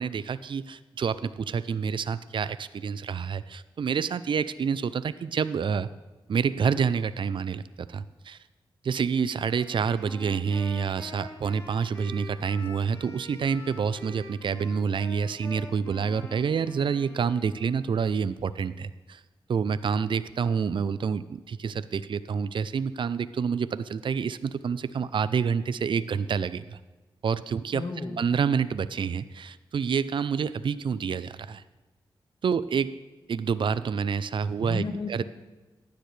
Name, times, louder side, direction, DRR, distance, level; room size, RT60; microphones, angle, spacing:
voice 1, 0.0-5.9 6.3-8.4 8.8-19.2 19.5-26.8 27.2-27.8 28.2-31.6 32.4-33.0 33.3-35.2, right 6 dB, 60° right, 15 dB, 0.4 m, -28 dB
Wind instrument woodwind instrument, 9.5-17.9, left 1 dB, 35° left, 3.9 m, -45 dB
voice 2, 27.7-28.3 34.6-35.2, left 3 dB, 50° left, 6 dB, 1.5 m, -33 dB
15.0 x 10.0 x 3.3 m, 1.2 s
cardioid pair, 45°, 10 cm